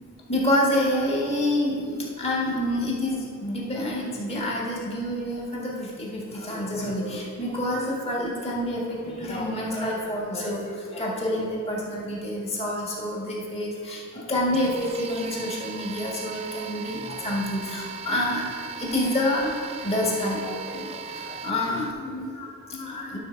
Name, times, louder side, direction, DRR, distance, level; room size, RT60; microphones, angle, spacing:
voice 1, 0.3-19.6 19.8-23.2, left 1 dB, 30° left, -4 dB, 1.7 m, -28 dB
sound 1, 14.5-21.9, right 6 dB, 30° right, 0.3 m, -38 dB
11.0 x 4.3 x 5.8 m, 2.3 s
head